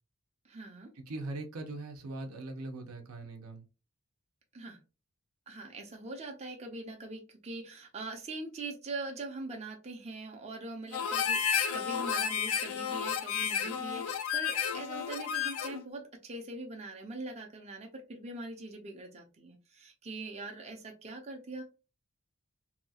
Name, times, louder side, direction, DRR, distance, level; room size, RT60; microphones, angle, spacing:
voice 1, 0.4-0.9 4.5-4.8 5.5-21.6, right 2 dB, 30° right, 0.6 m, -42 dB
voice 2, 0.9-3.6, right 2 dB, 75° right, 0.7 m, -41 dB
Harmonica, 10.9-15.8, left 7 dB, 65° left, 0.4 m, -32 dB
2.8 x 2.3 x 2.7 m
head